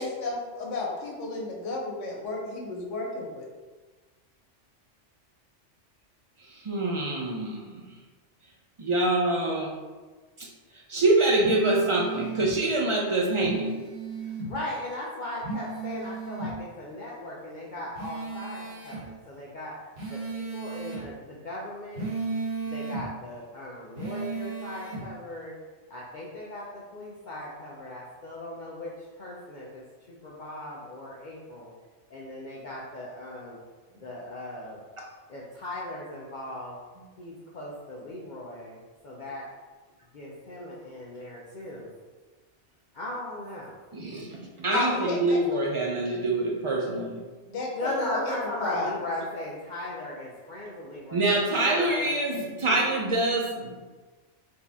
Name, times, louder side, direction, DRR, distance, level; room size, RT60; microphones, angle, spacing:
voice 1, 0.0-3.5 44.7-45.4 47.5-49.0, left 3 dB, 90° left, -1 dB, 1.2 m, -32 dB
voice 2, 6.5-7.9 8.8-9.8 10.4-10.5 10.9-13.7 43.9-47.2 51.1-53.8, right 2 dB, 45° right, -1 dB, 0.4 m, -25 dB
sound 1, 11.4-12.5 13.4-14.5 15.4-16.5 18.0-19.0 20.0-21.0 22.0-23.0 24.0-25.0, right 3 dB, 90° right, 1.4 m, -34 dB
voice 3, 14.2-19.8 20.1-22.1 22.6-25.6 25.9-31.7 32.1-33.6 33.9-36.8 37.2-39.5 40.1-42.0 42.9-43.8 47.7-52.1 52.6-52.9, left 1 dB, 50° left, -5 dB, 0.6 m, -38 dB
4.3 x 2.8 x 3.5 m, 1.4 s
omnidirectional pair, 1.2 m